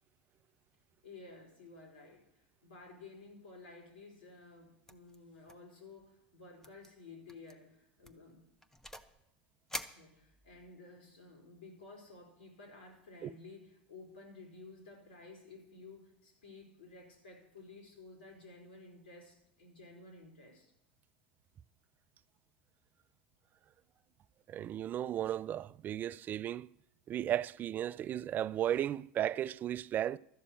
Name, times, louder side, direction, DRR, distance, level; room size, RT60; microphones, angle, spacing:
voice 1, 1.0-8.4 9.9-20.7, left 3 dB, 80° left, 4.2 m, -54 dB
sound 1, 4.9-5.2 5.5-5.7 6.0-6.1 6.6-6.9 7.3-7.5 8.0-9.2 9.7-10.7, left 1 dB, 10° left, 1.0 m, -46 dB
voice 2, 24.5-26.7 27.1-30.2, right 11 dB, 35° right, 0.4 m, -35 dB
13.0 x 6.9 x 8.7 m
hypercardioid pair, 85°, 5 cm